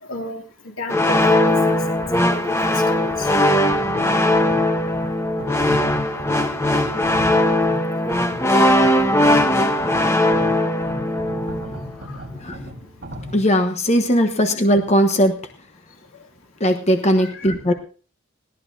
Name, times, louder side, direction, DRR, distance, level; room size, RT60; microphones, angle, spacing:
voice 1, 0.0-3.3 10.6-10.8 12.0-12.2 14.2-14.3 17.2-17.5, left 2 dB, 90° left, 1 dB, 2.7 m, -33 dB
sound 1, 0.9-11.8, left 1 dB, 15° left, 1.1 m, -19 dB
sound 2, 2.0-13.4, left 1 dB, 50° right, 4.3 m, -37 dB
voice 2, 12.4-12.7 13.3-15.4 16.6-17.7, equal, 35° left, 5 dB, 1.1 m, -18 dB
20.5 x 16.0 x 2.8 m, 0.40 s
head